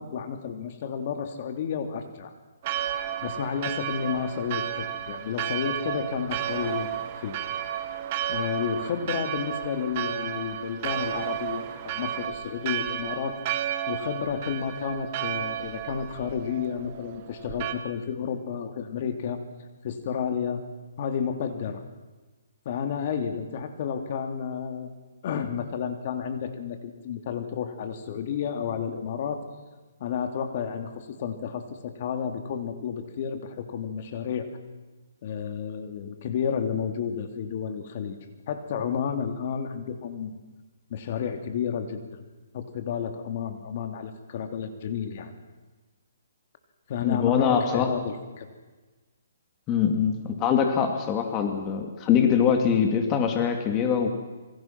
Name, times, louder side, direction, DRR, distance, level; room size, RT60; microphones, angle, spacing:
voice 1, 0.0-2.3 3.2-7.4 8.3-13.4 13.9-19.4 19.8-20.6 21.0-21.8 22.6-24.9 25.2-29.4 30.0-34.5 35.2-38.2 38.5-40.4 40.9-42.2 42.5-45.4 46.9-48.5, left 7 dB, 45° left, 6 dB, 2.9 m, -31 dB
Church bell, 2.6-17.7, right 11 dB, 35° right, 1.7 m, -32 dB
voice 2, 47.0-47.9 49.7-54.1, left 7 dB, 20° left, 4 dB, 2.7 m, -23 dB
28.0 x 24.5 x 6.1 m, 1.3 s
hypercardioid pair, 155°, 0 cm